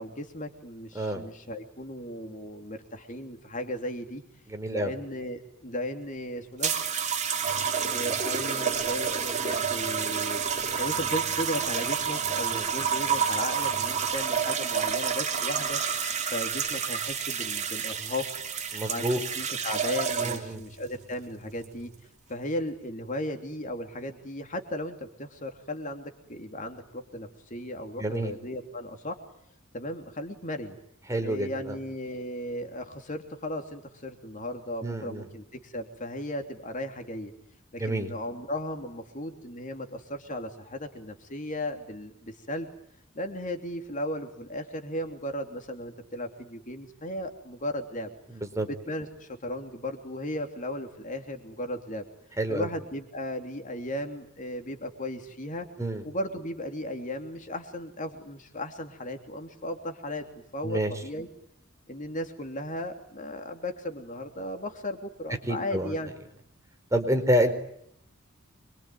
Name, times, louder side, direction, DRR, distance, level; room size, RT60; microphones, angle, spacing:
voice 1, 0.0-4.2 4.7-6.7 7.9-10.4 10.8-15.8 16.3-18.2 18.9-21.9 22.3-29.2 29.7-30.8 31.2-37.3 37.7-42.7 43.1-48.1 48.6-52.0 52.5-55.7 56.0-60.2 60.5-61.3 61.9-66.1, left 1 dB, 40° left, 5 dB, 3.1 m, -36 dB
voice 2, 4.5-4.9 12.5-12.6 18.7-19.2 20.2-20.6 28.0-28.3 31.1-31.7 34.8-35.2 37.8-38.1 48.3-48.7 52.4-52.7 55.8-56.0 60.6-60.9 65.5-65.9 66.9-67.6, right 1 dB, 15° right, 5 dB, 4.5 m, -28 dB
sound 1, 6.6-20.6 21.5-21.8, right 7 dB, 35° right, 2.9 m, -29 dB
26.0 x 24.0 x 9.2 m, 0.72 s
head